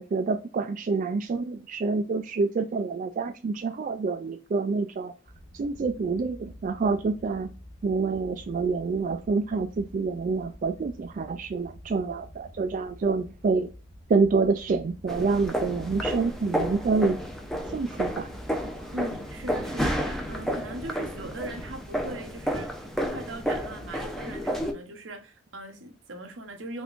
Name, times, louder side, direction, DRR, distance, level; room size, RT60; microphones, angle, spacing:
voice 1, 0.0-5.1 5.5-7.5 7.8-13.7 14.1-17.2 17.7-18.3, right 4 dB, 45° right, 0.3 m, -27 dB
Wind / Boat Water vehicle, 5.2-21.8, equal, 65° left, 1.2 m, -48 dB
sound 1, 15.1-24.7, equal, ahead, 0.6 m, -31 dB
voice 2, 18.9-26.8, right 1 dB, 80° right, 0.8 m, -40 dB
3.5 x 3.4 x 2.4 m
head